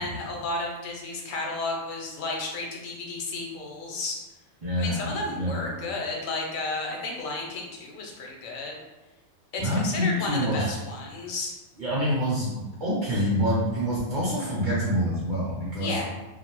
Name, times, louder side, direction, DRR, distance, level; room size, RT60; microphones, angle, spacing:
voice 1, 0.0-4.2 4.8-8.8 9.5-11.5 15.8-16.0, left 2 dB, 80° left, 0 dB, 1.0 m, -32 dB
voice 2, 4.6-5.6 9.6-10.7 11.8-16.0, equal, 45° right, -6 dB, 0.7 m, -26 dB
2.4 x 2.0 x 2.9 m, 1.1 s
omnidirectional pair, 1.4 m